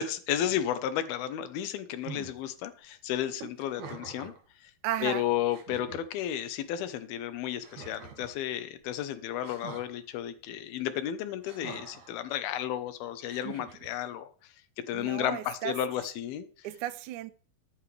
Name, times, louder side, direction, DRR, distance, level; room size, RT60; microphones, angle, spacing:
voice 1, 0.0-4.3 4.6-4.7 5.0-14.3 14.8-16.7, left 11 dB, 80° left, 2.9 m, -33 dB
sound 1, 2.0-2.3 3.6-4.4 5.1-5.2 5.5-6.0 7.6-8.4 9.4-9.9 11.4-12.1 13.2-13.9, right 6 dB, 55° right, 3.4 m, -45 dB
voice 2, 4.8-5.2 14.9-15.7 16.6-17.3, right 14 dB, 90° right, 1.7 m, -34 dB
13.5 x 11.5 x 3.4 m
omnidirectional pair, 4.5 m